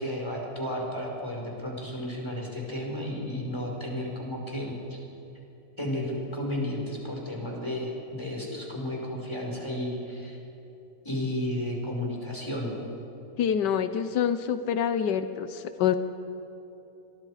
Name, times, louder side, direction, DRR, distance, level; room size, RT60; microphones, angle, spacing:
voice 1, 0.0-5.0 5.8-10.4 11.0-12.7, left 1 dB, 15° left, -2 dB, 5.2 m, -33 dB
voice 2, 13.4-16.0, left 8 dB, 90° left, 10 dB, 1.5 m, -26 dB
28.0 x 22.5 x 5.0 m, 2.9 s
omnidirectional pair, 1.8 m